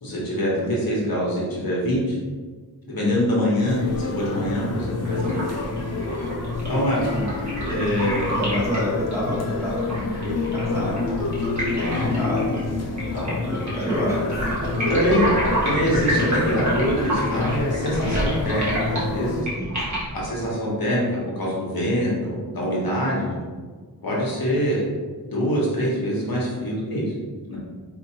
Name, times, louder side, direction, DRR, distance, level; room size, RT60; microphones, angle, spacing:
voice 1, 0.0-2.2 2.8-5.4 6.7-7.0 7.6-8.4 11.7-12.2 13.1-13.3 14.9-15.3 15.6-19.5 20.1-23.3 24.0-24.8 25.3-27.1 27.5-27.6, equal, 60° left, -5 dB, 1.1 m, -24 dB
sound 1, 3.7-19.4, left 3 dB, 40° left, 0.4 m, -28 dB
sound 2, 5.0-20.3, right 1 dB, 45° right, 1.4 m, -29 dB
voice 2, 8.3-11.2 11.8-12.6 13.1-14.4 19.5-20.1 23.1-23.5, equal, 5° right, -8 dB, 1.3 m, -29 dB
4.4 x 2.7 x 2.9 m, 1.5 s
wide cardioid pair, 90°, 40 cm